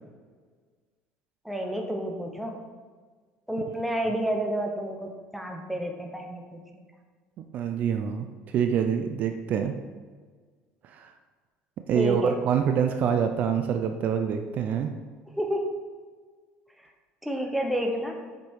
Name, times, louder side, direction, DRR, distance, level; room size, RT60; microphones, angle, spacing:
voice 1, 1.4-2.6 3.5-6.8 11.9-12.4 15.3-15.7 17.2-18.1, equal, ahead, 2 dB, 1.0 m, -30 dB
voice 2, 7.5-9.7 10.9-11.1 11.9-14.9, right 7 dB, 45° right, 6 dB, 0.5 m, -26 dB
7.7 x 5.3 x 4.6 m, 1.5 s
cardioid pair, 135°, 4 cm